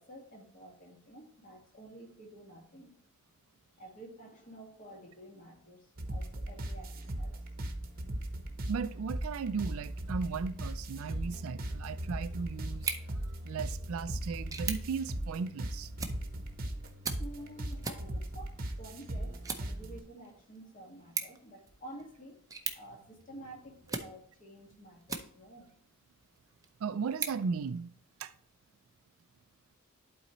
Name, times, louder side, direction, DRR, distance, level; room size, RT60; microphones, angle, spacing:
voice 1, 0.0-3.0 3.8-7.4 17.2-18.5 18.8-22.4 22.7-25.7, right 1 dB, 35° left, 1.9 m, -50 dB
sound 1, 6.0-20.0, right 1 dB, 40° right, 0.9 m, -38 dB
voice 2, 8.7-12.9 13.2-15.9 26.8-27.9 28.2-28.3, right 5 dB, 70° right, 0.4 m, -36 dB
sound 2, 12.7-25.7 26.2-28.3, right 5 dB, 15° right, 0.6 m, -43 dB
11.0 x 4.2 x 3.0 m
head